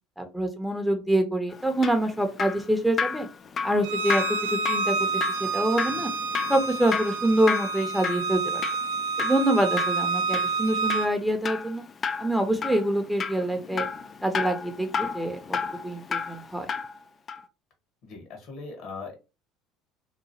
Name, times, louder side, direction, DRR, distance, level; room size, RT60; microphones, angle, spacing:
voice 1, 0.2-3.3 3.6-4.2 4.5-4.9 5.4-6.1 6.5-8.6 9.2-11.8 12.2-13.8 14.2-15.6 15.8-16.7, right 1 dB, 5° right, 5 dB, 0.6 m, -25 dB
Drip, 1.5-17.0 17.3-17.4, left 5 dB, 35° left, 0.3 m, -32 dB
Bowed string instrument, 3.8-11.1, right 4 dB, 75° right, 0.3 m, -28 dB
voice 2, 18.0-19.2, left 4 dB, 60° left, 3 dB, 1.1 m, -39 dB
2.8 x 2.4 x 2.7 m, 0.29 s
hypercardioid pair, 65°, 0 cm